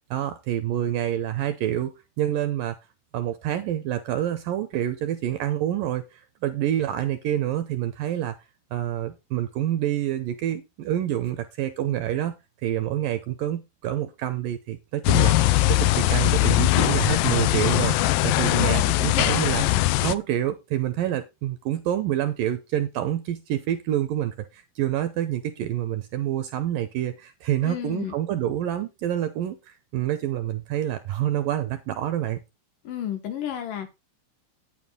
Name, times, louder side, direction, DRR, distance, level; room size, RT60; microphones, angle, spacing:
voice 1, 0.1-2.8 3.1-8.4 8.7-12.3 12.6-18.0 18.2-19.6 20.0-32.4, right 12 dB, 75° right, 10 dB, 2.2 m, -27 dB
sound 1, 15.0-20.1, left 16 dB, 85° left, 2.0 m, -21 dB
voice 2, 18.4-19.9 27.6-28.1 32.8-34.0, left 9 dB, 65° left, 6 dB, 2.6 m, -33 dB
9.3 x 9.2 x 3.9 m, 0.23 s
omnidirectional pair, 4.8 m